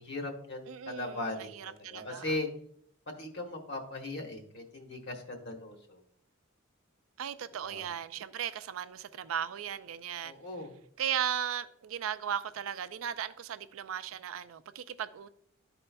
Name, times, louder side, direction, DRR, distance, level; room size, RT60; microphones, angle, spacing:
voice 1, 0.0-2.5 3.2-6.0 7.6-7.8 10.2-10.7, left 2 dB, 55° left, 1.2 m, -38 dB
voice 2, 0.7-2.3 7.2-10.3 11.0-15.3, right 9 dB, 85° right, 0.4 m, -36 dB
12.0 x 4.3 x 2.2 m
head